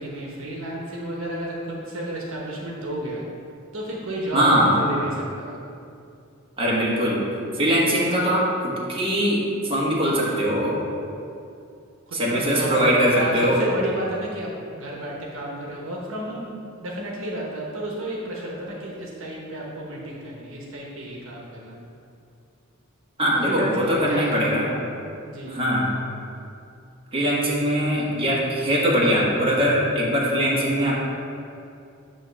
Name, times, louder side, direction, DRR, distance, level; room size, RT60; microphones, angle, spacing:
voice 1, 0.0-3.3 3.7-5.6 12.1-16.5 16.8-21.8 23.5-24.6 25.3-25.6, right 1 dB, 70° right, -3 dB, 1.2 m, -31 dB
voice 2, 4.3-4.8 6.6-7.2 7.5-9.4 9.7-10.8 12.1-13.7 23.2-24.7 25.5-26.0 27.1-31.0, equal, 25° right, -6 dB, 1.4 m, -21 dB
9.1 x 3.1 x 6.1 m, 2.5 s
head